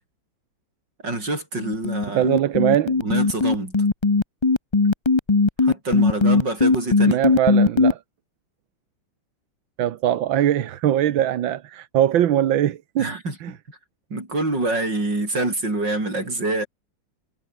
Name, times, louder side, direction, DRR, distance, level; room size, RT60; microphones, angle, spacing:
voice 1, 1.0-2.3 3.0-3.8 5.6-7.2 13.0-13.8 14.1-16.7, right 2 dB, 65° right, 8.5 m, -26 dB
sound 1, 1.6-7.9, left 3 dB, 25° left, 0.5 m, -18 dB
voice 2, 2.1-3.0 7.1-8.0 9.8-13.5, right 11 dB, 80° right, 1.8 m, -21 dB
omnidirectional pair, 2.1 m